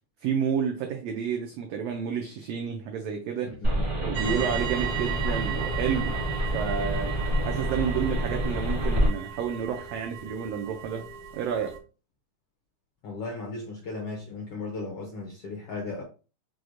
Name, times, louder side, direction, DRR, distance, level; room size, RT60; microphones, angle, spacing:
voice 1, 0.2-3.6 4.0-7.1 7.4-11.8, right 7 dB, 90° right, 1.4 m, -30 dB
voice 2, 3.6-3.9 4.2-4.6 13.0-16.0, left 3 dB, 75° left, 1.3 m, -36 dB
sound 1, 3.6-9.1, right 1 dB, 55° right, 0.5 m, -28 dB
sound 2, 4.1-11.8, right 9 dB, 75° right, 1.4 m, -37 dB
6.1 x 2.1 x 2.5 m
omnidirectional pair, 3.5 m